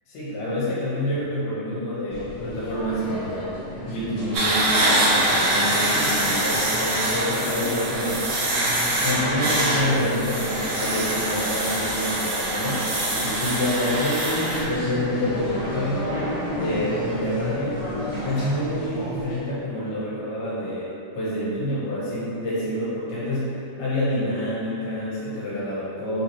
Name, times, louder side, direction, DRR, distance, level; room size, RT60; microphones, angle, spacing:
voice 1, 0.1-3.5 3.9-8.3 9.0-16.2 16.5-17.8 18.2-26.2, left 1 dB, 85° left, -9 dB, 2.8 m, -27 dB
sound 1, 2.1-19.4, left 1 dB, 60° left, 1.5 m, -34 dB
sound 2, 4.3-14.6, right 1 dB, 85° right, 1.5 m, -24 dB
sound 3, 6.3-18.6, equal, 50° right, 2.2 m, -40 dB
5.7 x 2.8 x 2.8 m, 2.7 s
omnidirectional pair, 4.4 m